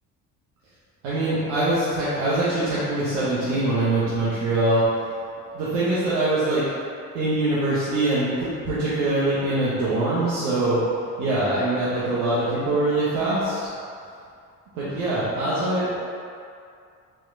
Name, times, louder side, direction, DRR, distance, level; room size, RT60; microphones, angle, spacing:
voice 1, 1.0-4.8 5.5-6.6 7.1-10.8 11.2-13.6 14.7-16.0, right 2 dB, 55° right, -10 dB, 1.0 m, -23 dB
4.5 x 3.5 x 2.6 m, 2.4 s
figure-of-eight pair, 55°, 45 cm